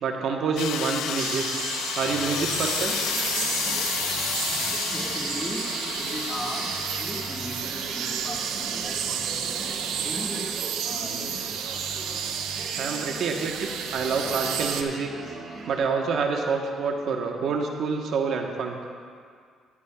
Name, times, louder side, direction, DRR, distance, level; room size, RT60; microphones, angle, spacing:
voice 1, 0.0-1.4 1.9-3.0 12.8-15.1 15.7-18.8, right 5 dB, 65° right, 2 dB, 1.0 m, -27 dB
sound 1, 0.6-9.2, left 10 dB, 85° left, 0.5 m, -32 dB
sound 2, 1.2-14.8, right 8 dB, 90° right, 0.8 m, -31 dB
sound 3, 2.0-15.8, right 2 dB, 40° right, 3.2 m, -41 dB
voice 2, 4.5-5.6 6.0-11.6 13.2-13.5 14.9-15.7 16.4-16.5 16.8-16.9, equal, 5° left, -1 dB, 1.5 m, -39 dB
18.0 x 11.0 x 2.3 m, 2.1 s
cardioid pair, 110°, 0 cm